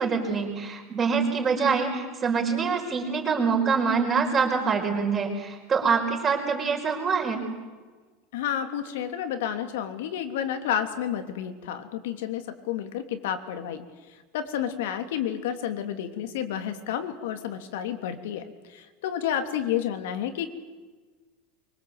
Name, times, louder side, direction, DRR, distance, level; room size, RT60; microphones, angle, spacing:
voice 1, 0.0-7.5, right 5 dB, 20° right, 1 dB, 4.9 m, -25 dB
voice 2, 8.3-13.8 14.3-20.5, left 9 dB, 85° left, 7 dB, 3.0 m, -30 dB
24.5 x 24.0 x 8.1 m, 1.3 s
supercardioid pair, 170°, 0 cm